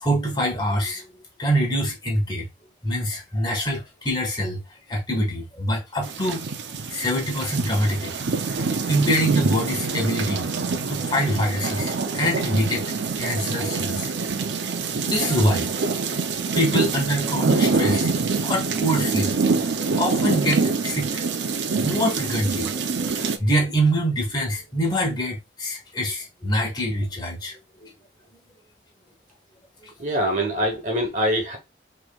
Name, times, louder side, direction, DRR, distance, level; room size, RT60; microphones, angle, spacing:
voice 1, 0.0-1.0 1.4-2.5 2.8-4.6 4.9-6.4 6.9-8.2 8.5-10.5 10.9-14.1 15.0-15.7 16.5-18.1 18.4-19.3 19.6-21.2 21.7-22.7 23.1-27.5 27.8-27.9 29.8-29.9, equal, 25° left, 1.5 m, -25 dB
sound 1, 6.0-23.4, right 4 dB, 85° right, 0.6 m, -25 dB
voice 2, 30.0-31.6, equal, 45° right, 1.5 m, -24 dB
6.2 x 3.3 x 2.4 m
head